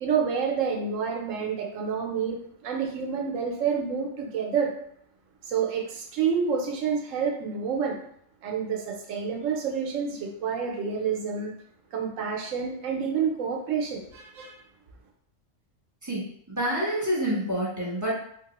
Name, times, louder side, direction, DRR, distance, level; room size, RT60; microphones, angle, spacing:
voice 1, 0.0-2.4 2.6-4.7 5.5-8.0 8.4-11.5 11.9-14.5, right 6 dB, 85° right, 2 dB, 1.0 m, -28 dB
voice 2, 16.5-18.2, equal, 15° right, -7 dB, 0.9 m, -27 dB
3.5 x 2.2 x 2.9 m, 0.67 s
omnidirectional pair, 1.3 m